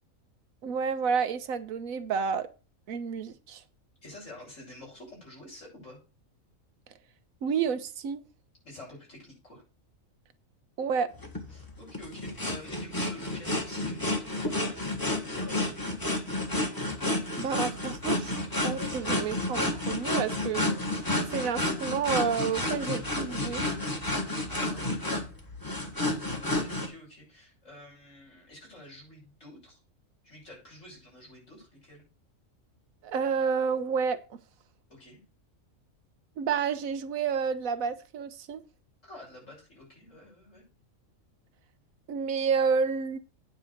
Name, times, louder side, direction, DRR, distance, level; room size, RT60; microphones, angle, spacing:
voice 1, 0.6-2.5 2.9-3.6 7.4-8.2 10.8-11.1 17.4-20.7 21.3-23.7 33.0-34.2 36.4-38.6 42.1-43.2, right 6 dB, 85° right, 1.3 m, -30 dB
voice 2, 4.0-6.0 8.6-9.6 11.5-16.0 24.5-25.1 26.5-29.8 30.2-32.0 34.9-35.2 39.0-40.6, left 1 dB, 65° left, 6.7 m, -49 dB
sound 1, 11.2-26.9, left 2 dB, 15° left, 1.6 m, -31 dB
9.2 x 4.6 x 6.3 m
omnidirectional pair, 1.4 m